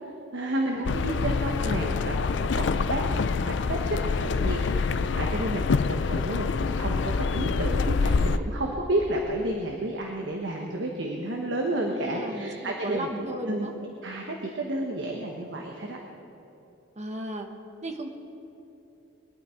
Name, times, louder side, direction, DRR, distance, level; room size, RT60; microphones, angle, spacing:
voice 1, 0.0-13.1 13.5-13.7 14.0-16.0, right 1 dB, 75° right, 1 dB, 1.3 m, -31 dB
voice 2, 0.6-1.0 11.9-13.7 17.0-17.5 17.8-18.1, right 1 dB, 40° right, 3 dB, 1.3 m, -35 dB
sound 1, 0.8-8.4, left 4 dB, 70° left, 0.4 m, -26 dB
22.0 x 11.5 x 4.5 m, 2.9 s
head